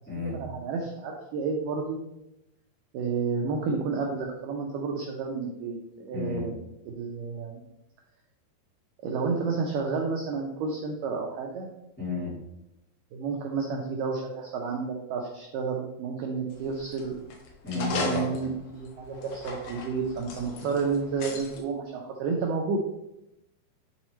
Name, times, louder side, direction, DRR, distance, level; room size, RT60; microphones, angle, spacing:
voice 1, 0.1-2.0 2.9-6.5 6.9-7.6 9.0-11.7 13.1-17.2 17.7-22.8, right 4 dB, 85° right, 0 dB, 1.9 m, -31 dB
voice 2, 6.1-6.5 12.0-12.3 17.6-18.3, left 4 dB, 5° left, -9 dB, 1.4 m, -32 dB
sound 1, 16.5-21.6, left 4 dB, 75° left, 2.8 m, -38 dB
10.0 x 4.0 x 3.1 m, 0.87 s
omnidirectional pair, 4.7 m